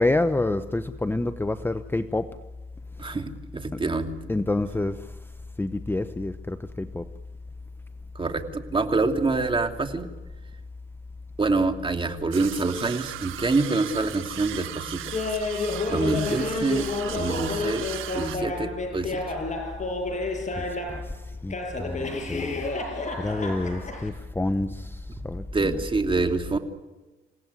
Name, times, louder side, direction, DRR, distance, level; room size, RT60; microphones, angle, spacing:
voice 1, 0.0-2.3 4.3-5.0 5.6-7.0 20.6-21.0 21.4-22.6 23.2-25.0 25.2-25.7, left 2 dB, 10° left, 0.9 m, -28 dB
voice 2, 3.0-4.1 8.1-10.1 11.4-15.0 15.9-16.9 17.1-17.8 18.1-19.2 25.5-26.6, right 3 dB, 25° right, 2.8 m, -26 dB
sound 1, 12.3-18.4, right 13 dB, 90° right, 1.5 m, -37 dB
Laughter, 15.1-21.1 21.5-24.1, left 3 dB, 40° left, 7.2 m, -30 dB
28.0 x 17.5 x 9.7 m
cardioid pair, 90°, 20 cm